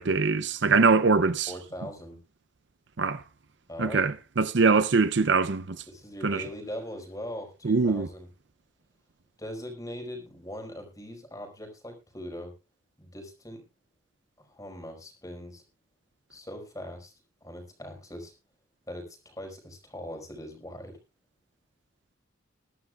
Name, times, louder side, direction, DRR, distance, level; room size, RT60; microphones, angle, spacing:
voice 1, 0.0-1.5 3.0-3.2 3.8-5.8 6.2-6.4 7.6-8.1, right 4 dB, 60° right, 0.6 m, -23 dB
voice 2, 1.5-2.2 3.7-4.1 5.9-8.3 9.4-12.5 13.0-13.6 14.4-15.6 16.3-17.1 17.4-18.3 18.9-21.0, equal, 15° left, 5.0 m, -41 dB
22.0 x 11.5 x 2.4 m
head